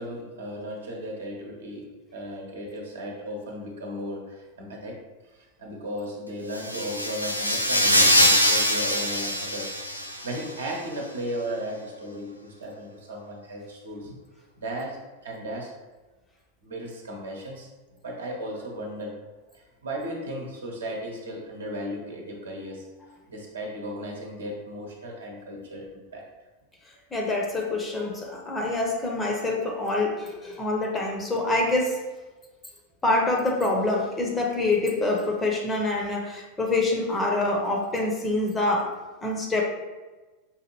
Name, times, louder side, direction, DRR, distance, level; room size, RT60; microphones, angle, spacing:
voice 1, 0.0-5.0 5.3-14.2 14.6-15.7 16.6-17.7 18.0-19.2 19.5-22.9 23.3-26.3, equal, 65° right, -1 dB, 0.9 m, -36 dB
sound 1, 6.5-10.4, equal, 90° left, 0.4 m, -23 dB
voice 2, 27.1-32.0 33.0-38.9 39.2-39.6, left 2 dB, 15° left, -1 dB, 0.8 m, -26 dB
5.4 x 2.5 x 3.0 m, 1.2 s
figure-of-eight pair, 90°, 0 cm